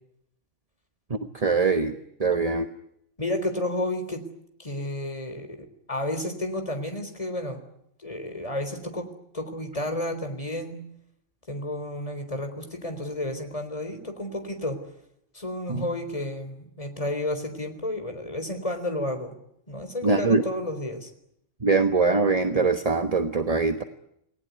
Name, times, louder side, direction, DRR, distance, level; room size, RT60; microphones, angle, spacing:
voice 1, 1.1-1.9 2.2-2.7 15.7-15.9 20.0-20.4 21.6-23.8, right 4 dB, 30° right, 8 dB, 1.3 m, -23 dB
voice 2, 3.2-4.2 4.6-7.6 8.0-9.1 9.3-10.8 11.5-14.8 15.3-19.4 19.7-21.1, left 1 dB, 25° left, 6 dB, 4.0 m, -31 dB
29.0 x 20.0 x 9.5 m, 0.75 s
omnidirectional pair, 1.3 m